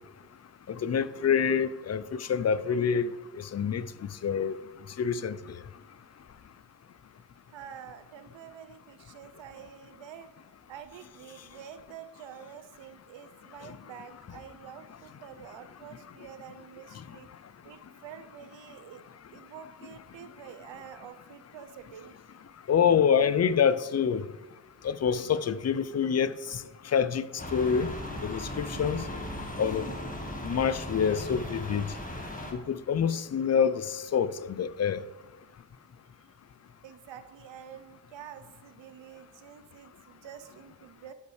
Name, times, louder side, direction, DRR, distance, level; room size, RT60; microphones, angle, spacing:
voice 1, 0.7-3.1 3.5-3.9 4.2-4.5 5.0-5.4 22.7-24.2 24.8-26.6 26.9-27.2 27.5-27.9 28.2-29.0 29.6-29.9 30.4-31.9 32.5-35.0, left 7 dB, 40° left, 0.4 m, -26 dB
voice 2, 7.5-10.3 10.7-17.3 17.6-19.0 19.3-22.1 36.8-41.1, right 9 dB, 85° right, 0.6 m, -47 dB
sound 1, 27.4-32.5, left 1 dB, 20° left, 1.4 m, -37 dB
11.0 x 5.4 x 3.2 m
cardioid pair, 55°, 43 cm